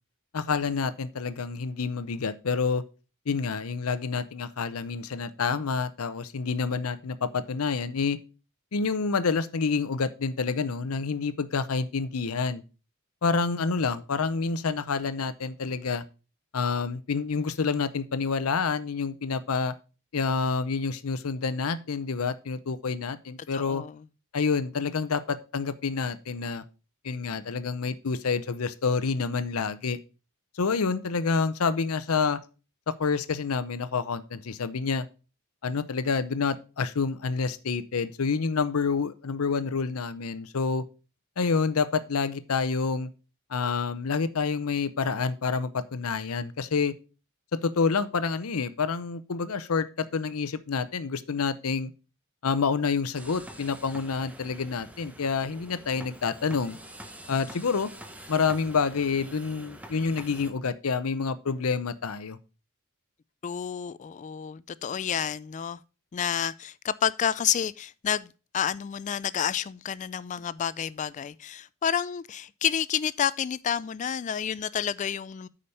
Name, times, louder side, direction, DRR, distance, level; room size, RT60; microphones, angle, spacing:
voice 1, 0.3-2.8 3.3-8.2 8.7-12.6 13.2-16.0 16.5-19.7 20.1-23.8 24.3-26.6 27.0-30.0 30.6-32.4 32.9-35.1 35.6-40.8 41.4-43.1 43.5-46.9 47.5-51.9 52.4-56.8 57.3-57.9 58.3-62.4, left 5 dB, 85° left, 0.7 m, -28 dB
voice 2, 23.5-24.0 63.4-65.8 66.1-75.5, left 8 dB, 35° left, 0.3 m, -30 dB
sound 1, 53.1-60.5, right 1 dB, 5° right, 0.9 m, -46 dB
8.5 x 5.1 x 5.4 m
head